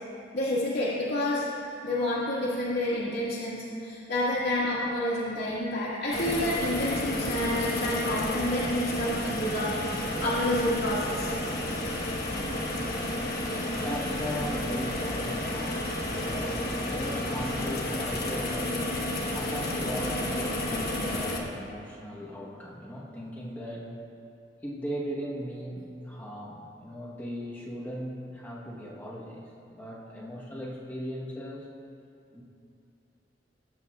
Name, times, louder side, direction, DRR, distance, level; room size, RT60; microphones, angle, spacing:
voice 1, 0.3-1.5 1.8-11.4, left 1 dB, 90° left, -10 dB, 1.7 m, -29 dB
sound 1, 6.1-21.4, left 1 dB, 60° left, 1.1 m, -31 dB
voice 2, 12.8-24.0 24.6-31.7 32.3-32.4, equal, 10° left, -6 dB, 1.1 m, -38 dB
18.5 x 8.0 x 2.4 m, 2.5 s
head